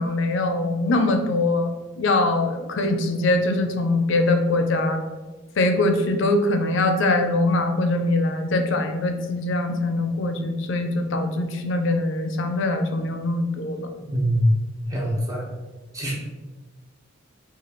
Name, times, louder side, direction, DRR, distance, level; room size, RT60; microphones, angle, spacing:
voice 1, 0.0-1.7 2.0-5.0 5.6-13.9, left 2 dB, 65° left, 5 dB, 0.4 m, -22 dB
voice 2, 14.1-14.5 14.9-15.4 15.9-16.1, equal, 15° right, -5 dB, 0.9 m, -23 dB
3.0 x 2.4 x 4.1 m, 1.2 s
head